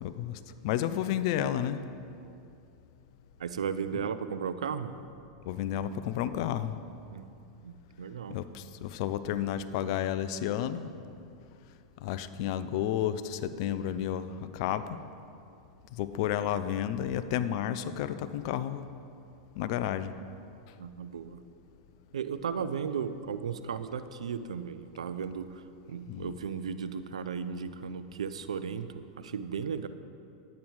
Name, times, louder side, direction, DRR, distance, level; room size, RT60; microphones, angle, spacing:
voice 1, 0.0-1.8 5.4-6.8 8.3-10.9 12.0-15.0 15.9-18.9 19.6-20.1 26.1-26.4, left 10 dB, 60° left, 12 dB, 0.5 m, -31 dB
voice 2, 3.4-5.0 7.1-7.3 7.6-8.4 20.8-21.4 22.1-25.6 25.9-29.9, right 7 dB, 85° right, 12 dB, 0.5 m, -35 dB
10.5 x 8.7 x 4.7 m, 2.6 s
hypercardioid pair, 105°, 3 cm